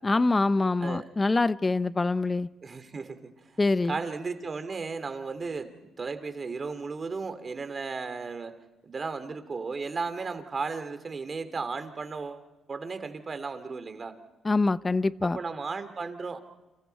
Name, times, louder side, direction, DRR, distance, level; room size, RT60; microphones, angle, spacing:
voice 1, 0.0-2.5 3.6-4.0 14.4-15.4, left 3 dB, 25° left, 0.7 m, -25 dB
voice 2, 2.6-3.5 3.9-5.7 6.0-8.5 8.8-14.1 15.2-16.4, right 4 dB, 35° right, 2.6 m, -35 dB
30.0 x 27.5 x 4.6 m
cardioid pair, 90°, 0 cm